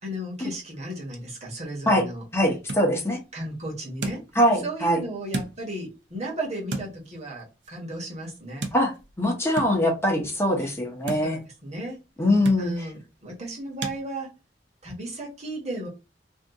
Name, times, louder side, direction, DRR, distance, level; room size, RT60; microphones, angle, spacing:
voice 1, 0.0-2.2 3.3-4.2 4.6-8.7 11.1-12.0 12.6-14.3 14.8-15.9, right 1 dB, 40° right, 1.2 m, -35 dB
sound 1, 1.9-14.0, right 2 dB, 75° right, 0.7 m, -39 dB
voice 2, 2.3-3.2 4.3-5.0 8.7-8.9 9.2-11.4 12.2-12.9, left 1 dB, 15° left, 0.8 m, -22 dB
2.7 x 2.5 x 3.5 m
head